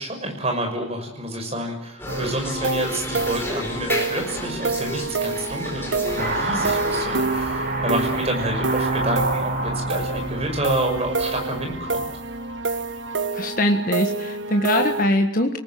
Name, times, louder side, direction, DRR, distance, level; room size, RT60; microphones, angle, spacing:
voice 1, 0.0-12.1, right 1 dB, 30° right, 3 dB, 6.2 m, -28 dB
sound 1, 2.0-7.1, left 1 dB, 10° left, 4.7 m, -32 dB
sound 2, 2.1-15.0, right 3 dB, 75° right, 1.6 m, -27 dB
Car passing by / Accelerating revving vroom, 6.2-12.8, right 2 dB, 50° right, 7.2 m, -29 dB
voice 2, 13.3-15.6, left 1 dB, 45° left, 4 dB, 1.6 m, -22 dB
28.0 x 19.5 x 7.7 m, 0.78 s
head